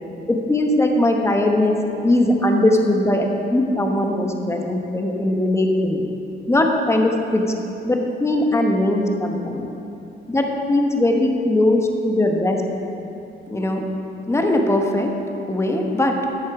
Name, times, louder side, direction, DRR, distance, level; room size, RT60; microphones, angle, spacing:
voice 1, 0.3-6.1 6.5-7.4 7.8-9.7 10.3-12.6 13.5-13.8 14.3-15.1 15.5-16.2, left 1 dB, 15° left, 3 dB, 1.0 m, -20 dB
10.0 x 6.5 x 4.8 m, 2.8 s
cardioid pair, 90°, 20 cm